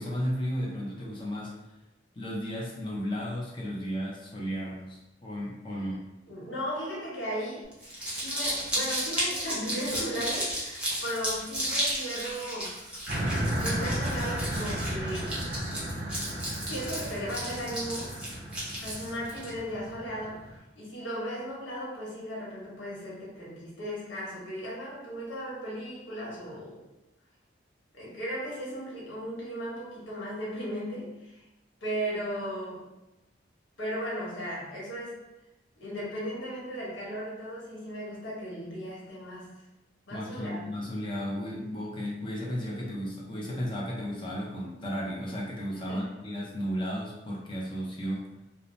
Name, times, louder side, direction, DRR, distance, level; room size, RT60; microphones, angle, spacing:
voice 1, 0.0-1.5 2.1-6.0 40.1-48.2, equal, 25° left, -3 dB, 0.5 m, -34 dB
voice 2, 6.3-7.7 8.1-12.7 13.5-15.4 16.6-18.2 18.8-20.4 20.7-26.9 27.9-31.4 31.8-32.9 33.8-35.2 35.8-39.5 40.1-40.7 45.9-46.1, equal, 90° left, -6 dB, 1.1 m, -36 dB
Crumpling crinkling, 7.7-19.5, equal, 5° right, 0.7 m, -33 dB
sound 1, 13.1-20.6, right 1 dB, 60° right, 0.6 m, -34 dB
2.6 x 2.0 x 3.1 m, 0.96 s
head